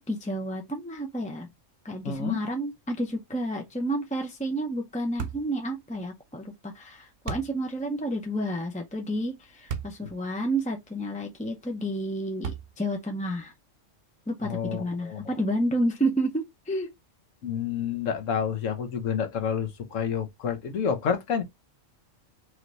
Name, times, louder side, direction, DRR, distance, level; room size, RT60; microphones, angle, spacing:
voice 1, 0.0-1.5 1.8-13.5 14.3-16.9, right 1 dB, 10° left, 0.4 m, -30 dB
voice 2, 2.0-2.4 10.0-10.1 14.4-15.3 17.4-21.4, left 7 dB, 80° left, 1.3 m, -29 dB
sound 1, 5.2-5.5 7.3-7.5 9.7-10.0 10.6-10.7 12.4-12.9, right 7 dB, 75° right, 1.0 m, -34 dB
3.2 x 3.1 x 3.9 m
omnidirectional pair, 1.3 m